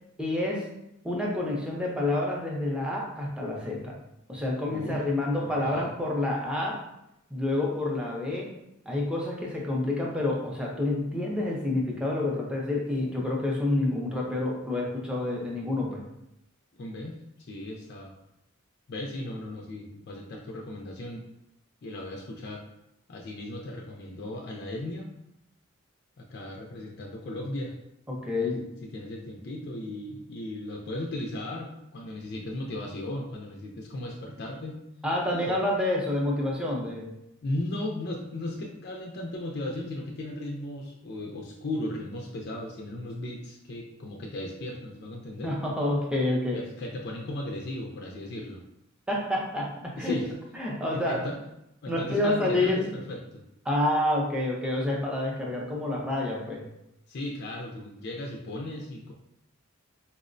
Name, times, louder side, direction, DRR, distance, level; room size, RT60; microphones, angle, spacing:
voice 1, 0.2-0.7 1.0-3.9 4.3-6.8 7.3-8.5 8.9-16.0 28.1-28.6 35.0-37.1 45.4-46.6 49.1-50.2 50.5-51.2 51.9-52.9 53.7-56.6, left 1 dB, 5° right, -3 dB, 0.5 m, -28 dB
voice 2, 4.7-5.0 5.4-5.9 16.8-17.2 17.5-18.1 18.9-21.2 21.8-22.6 23.1-25.1 26.2-27.7 28.4-28.5 28.9-34.8 35.5-35.6 37.4-45.5 46.5-48.6 50.0-50.3 50.9-51.4 51.8-53.4 57.1-59.1, left 1 dB, 50° left, 0 dB, 0.4 m, -36 dB
4.3 x 2.0 x 2.5 m, 0.84 s
head